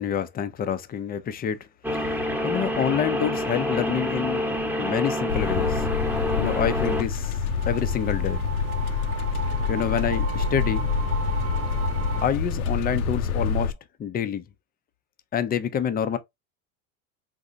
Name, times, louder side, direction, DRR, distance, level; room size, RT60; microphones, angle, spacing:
voice 1, 0.0-1.6 1.9-2.1 2.4-4.4 4.8-5.9 6.4-7.4 7.7-8.4 9.7-10.9 12.2-13.7 14.0-14.4 15.3-16.2, left 8 dB, 20° left, 0.5 m, -27 dB
sound 1, 1.8-7.0, left 1 dB, 5° right, 1.0 m, -27 dB
sound 2, 5.3-13.7, left 5 dB, 85° left, 0.7 m, -27 dB
sound 3, 6.8-12.3, right 6 dB, 35° right, 0.6 m, -36 dB
3.8 x 2.7 x 2.5 m
hypercardioid pair, 105°, 42 cm